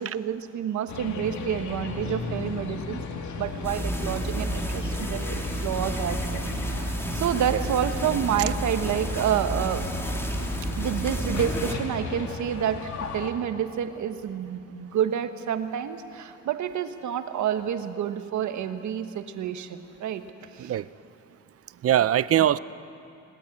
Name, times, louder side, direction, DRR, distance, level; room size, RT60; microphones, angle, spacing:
voice 1, 0.0-9.9 10.8-20.2 20.5-20.7 22.4-22.5, right 9 dB, 70° right, 9 dB, 1.3 m, -29 dB
sound 1, 0.9-13.3, left 4 dB, 70° left, 2.4 m, -36 dB
sound 2, 3.6-11.7, right 1 dB, 10° left, 2.5 m, -31 dB
voice 2, 20.6-20.9 21.8-22.6, right 11 dB, 50° right, 17 dB, 0.6 m, -22 dB
20.5 x 19.5 x 8.5 m, 2.9 s
cardioid pair, 90°, 30 cm